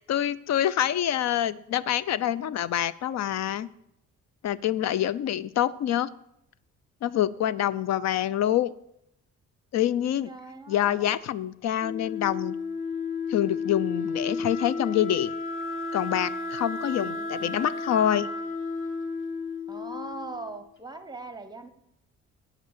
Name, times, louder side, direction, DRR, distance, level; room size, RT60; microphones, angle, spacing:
voice 1, 0.0-3.7 4.4-6.1 7.0-8.7 9.7-10.3 10.7-12.5 13.3-15.3 15.9-18.3, left 11 dB, 60° left, 18 dB, 0.5 m, -26 dB
voice 2, 10.2-11.1 16.9-17.6 19.7-21.7, right 3 dB, 15° right, 9 dB, 1.0 m, -41 dB
Wind instrument woodwind instrument, 11.8-20.5, left 4 dB, 40° left, 1.5 m, -33 dB
10.5 x 5.2 x 7.2 m, 0.77 s
cardioid pair, 90°, 30 cm